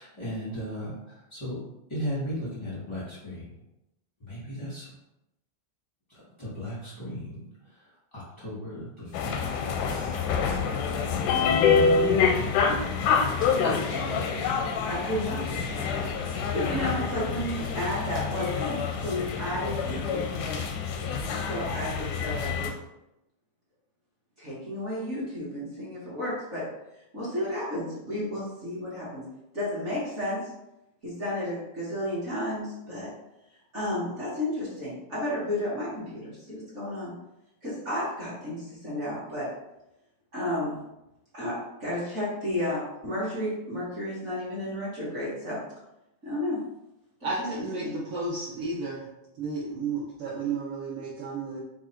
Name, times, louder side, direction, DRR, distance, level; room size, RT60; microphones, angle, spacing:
voice 1, 0.0-1.6 1.9-3.5 4.2-4.9 6.1-7.4 8.1-10.2 11.2-12.5 13.4-14.2, equal, 40° left, -10 dB, 0.4 m, -36 dB
sound 1, 9.1-22.7, left 6 dB, 85° left, 2.0 m, -27 dB
voice 2, 13.9-14.2 14.8-20.6 21.3-22.7 24.4-26.6 27.1-29.2 29.5-30.5 31.0-33.1 33.7-37.1 37.6-39.5 40.3-40.8 41.3-45.6 46.2-46.6 47.2-47.5 47.8-48.0, left 1 dB, 55° right, -9 dB, 0.7 m, -32 dB
voice 3, 47.2-49.1 49.4-51.6, right 3 dB, 80° right, -5 dB, 1.2 m, -32 dB
4.5 x 2.4 x 4.3 m, 0.90 s
omnidirectional pair, 3.4 m